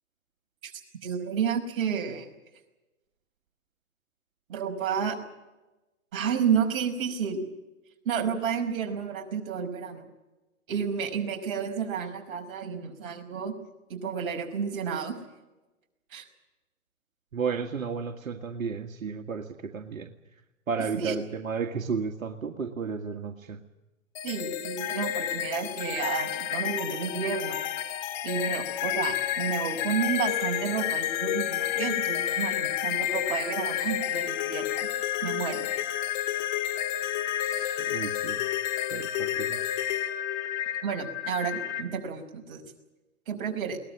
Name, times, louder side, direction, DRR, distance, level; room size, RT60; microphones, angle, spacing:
voice 1, 1.0-2.3 4.5-5.2 6.1-7.4 8.0-10.0 10.7-13.5 13.9-15.2 16.1-16.2 20.8-21.1 24.2-27.6 28.2-34.9 35.2-35.7 40.8-42.6 43.3-43.8, right 7 dB, 40° right, 2 dB, 5.3 m, -31 dB
voice 2, 17.3-20.1 20.7-23.6 37.4-38.4 38.9-39.6, right 5 dB, 80° right, 4 dB, 1.9 m, -33 dB
sound 1, 24.2-41.8, left 12 dB, 35° left, 2.0 m, -30 dB
22.0 x 19.5 x 8.8 m, 1.1 s
hypercardioid pair, 140°, 40 cm